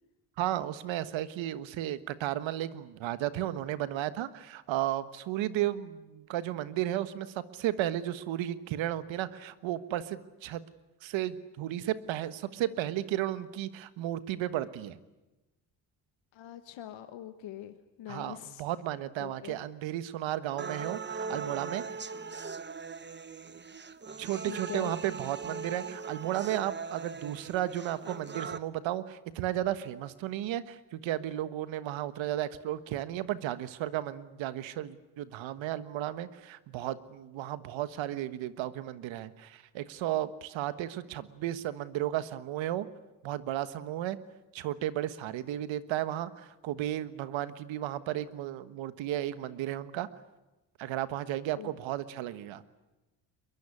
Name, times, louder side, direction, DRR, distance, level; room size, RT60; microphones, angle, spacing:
voice 1, 0.4-10.6 11.0-15.0 18.1-22.0 24.2-42.9 43.2-44.2 44.5-50.1 50.8-52.6, right 13 dB, 85° right, 13 dB, 1.4 m, -34 dB
voice 2, 16.3-18.6 19.2-19.6 24.3-24.9 51.6-51.7, left 12 dB, 80° left, 9 dB, 1.4 m, -43 dB
sound 1, 20.6-28.6, right 5 dB, 25° right, 1.1 m, -40 dB
22.5 x 22.0 x 9.7 m, 1.0 s
cardioid pair, 75°, 45 cm